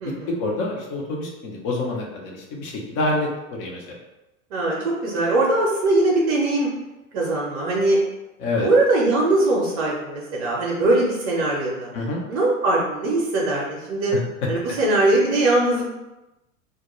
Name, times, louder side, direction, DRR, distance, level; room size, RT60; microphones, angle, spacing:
voice 1, 0.0-3.8 8.4-8.7 11.9-12.2 14.1-14.2, left 2 dB, 30° left, -1 dB, 0.6 m, -27 dB
voice 2, 4.5-6.7 7.1-8.0 8.6-11.9 12.3-14.1 14.5-15.8, right 2 dB, 50° right, -3 dB, 0.7 m, -21 dB
2.3 x 2.1 x 3.0 m, 1.0 s
figure-of-eight pair, 85°, 41 cm